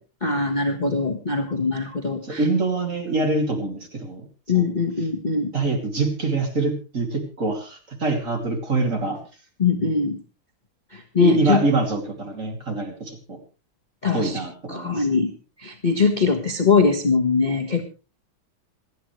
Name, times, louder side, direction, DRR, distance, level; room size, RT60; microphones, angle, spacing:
voice 1, 0.2-2.4 4.5-5.5 9.6-10.2 10.9-11.6 14.0-14.4 14.7-15.3 15.6-17.8, left 4 dB, 25° left, 5 dB, 1.2 m, -21 dB
voice 2, 2.2-4.2 4.5-4.7 5.5-9.2 11.2-13.4 14.1-15.1, right 3 dB, 35° right, 3 dB, 3.1 m, -25 dB
27.0 x 9.3 x 3.2 m, 0.33 s
omnidirectional pair, 2.3 m